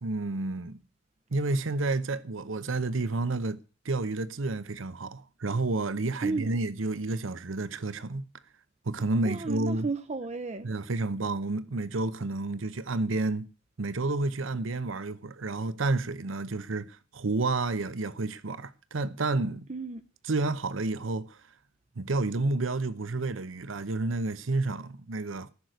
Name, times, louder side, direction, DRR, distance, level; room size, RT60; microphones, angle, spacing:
voice 1, 0.0-0.8 1.3-3.6 3.8-8.3 8.9-9.9 10.6-13.5 13.8-19.7 20.3-21.4 22.0-25.5, right 2 dB, 80° right, 0.8 m, -30 dB
voice 2, 6.2-6.5 9.2-10.7 19.7-20.1, right 3 dB, 35° right, 0.6 m, -33 dB
14.5 x 6.6 x 9.1 m
head